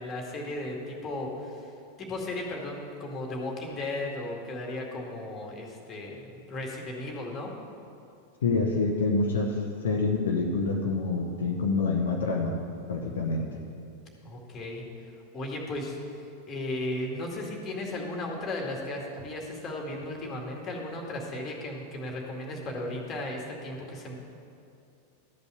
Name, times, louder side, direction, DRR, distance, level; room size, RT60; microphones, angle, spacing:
voice 1, 0.0-1.7 2.0-7.5 14.2-14.8 15.3-16.0 16.5-24.1, left 1 dB, 25° left, 0 dB, 2.2 m, -35 dB
voice 2, 8.4-12.6 12.9-13.4, left 3 dB, 65° left, 0 dB, 1.0 m, -27 dB
13.0 x 5.4 x 8.2 m, 2.6 s
figure-of-eight pair, 90°, 0 cm